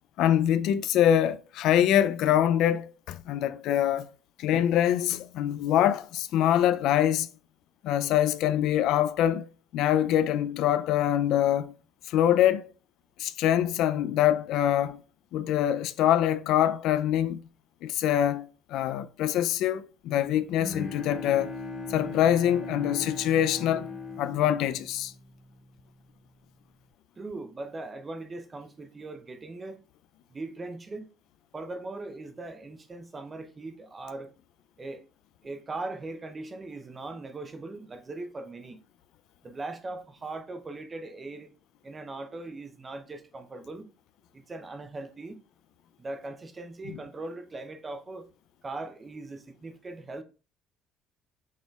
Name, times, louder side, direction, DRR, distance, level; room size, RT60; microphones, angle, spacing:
voice 1, 0.2-4.1 4.4-7.3 7.8-9.4 9.7-11.7 12.1-12.7 13.2-15.0 15.3-17.4 17.8-21.5 21.9-23.9 24.2-25.1, left 11 dB, 65° left, 0.4 m, -24 dB
Bowed string instrument, 20.5-25.7, left 3 dB, 15° left, 1.4 m, -38 dB
voice 2, 27.2-29.8 30.3-31.1 31.5-34.3 34.8-35.0 35.4-38.8 39.4-41.5 41.8-43.9 44.3-45.4 46.0-48.3 48.6-50.2, right 2 dB, 20° right, 0.6 m, -39 dB
6.3 x 3.6 x 2.3 m
cardioid pair, 145°, 0 cm